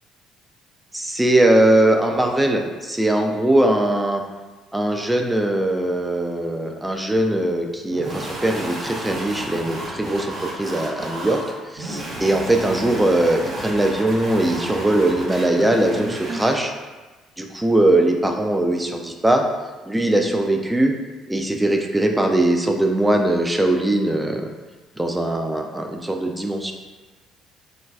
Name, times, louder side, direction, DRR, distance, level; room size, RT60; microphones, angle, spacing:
voice 1, 0.9-4.2 4.7-10.3 10.6-11.4 11.7-16.7 17.4-19.4 19.9-20.9 21.3-24.5 25.0-26.7, right 1 dB, 10° right, 3 dB, 0.4 m, -20 dB
sound 1, 7.9-16.6, right 1 dB, 45° right, 0.7 m, -32 dB
3.7 x 2.2 x 2.3 m, 1.2 s
figure-of-eight pair, 50°, 0 cm